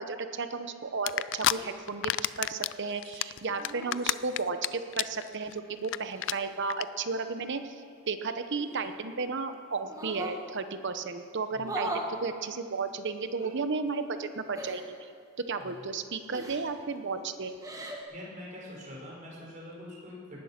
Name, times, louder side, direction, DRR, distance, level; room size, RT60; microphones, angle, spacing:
voice 1, 0.0-14.8 15.5-17.6, right 4 dB, 55° right, 9 dB, 0.9 m, -34 dB
sound 1, 1.1-1.5 1.9-2.7 3.0-4.7 4.9-5.2 5.5-5.6 5.8-6.0 6.2-6.3 6.7-6.8, left 13 dB, 60° left, 0.4 m, -28 dB
sound 2, 1.5-1.8 3.5-4.1 5.4-6.5 8.6-9.3 9.8-10.4 11.6-12.1 13.4-13.5 14.5-14.9 16.3-16.8 17.5-18.0, right 1 dB, 15° right, 1.5 m, -39 dB
voice 2, 18.1-20.4, left 1 dB, 35° right, -3 dB, 4.7 m, -45 dB
19.0 x 11.0 x 5.9 m, 2.2 s
head